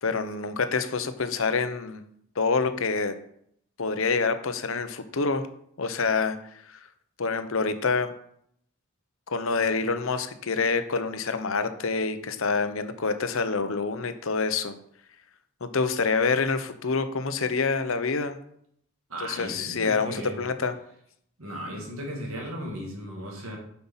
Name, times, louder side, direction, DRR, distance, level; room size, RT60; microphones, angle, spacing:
voice 1, 0.0-2.0 2.4-3.1 3.8-5.4 5.8-6.4 6.6-6.9 7.2-8.1 9.3-14.7 15.6-18.4 19.2-20.7, left 4 dB, 70° left, 10 dB, 0.8 m, -27 dB
voice 2, 19.1-20.4 21.4-23.6, equal, 75° right, 0 dB, 2.5 m, -36 dB
7.8 x 5.7 x 5.7 m, 0.69 s
head